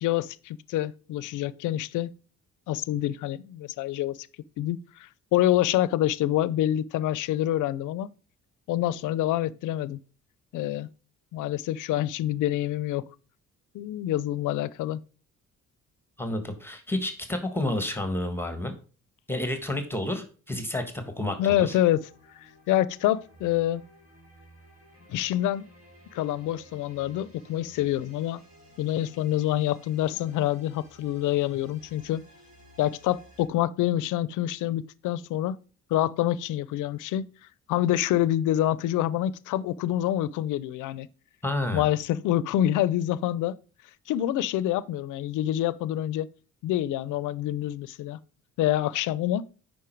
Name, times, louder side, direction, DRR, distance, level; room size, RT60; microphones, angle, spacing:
voice 1, 0.0-2.1 2.7-4.2 4.6-8.1 8.7-10.0 10.5-10.9 11.3-13.0 13.7-15.0 21.4-22.0 22.4-23.8 25.1-25.7 26.1-28.4 28.8-32.2 32.8-35.6 35.9-37.2 37.7-41.1 41.7-43.6 44.1-46.3 46.6-48.2 48.6-49.4, left 13 dB, 85° left, 0.5 m, -26 dB
voice 2, 16.2-18.7 19.3-21.8 41.4-41.9, left 1 dB, 5° left, 1.4 m, -30 dB
sound 1, 21.7-33.5, equal, 50° right, 4.4 m, -55 dB
8.5 x 5.4 x 4.5 m
cardioid pair, 90°, 30 cm